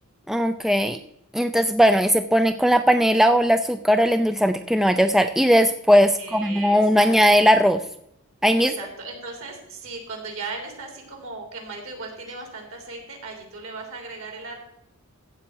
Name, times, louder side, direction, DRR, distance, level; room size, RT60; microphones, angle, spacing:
voice 1, 0.3-1.0 1.3-7.8 8.4-8.7, equal, ahead, 8 dB, 0.4 m, -18 dB
voice 2, 6.2-7.1 8.5-14.6, right 3 dB, 65° right, 1 dB, 3.6 m, -37 dB
15.5 x 7.5 x 4.6 m, 0.78 s
head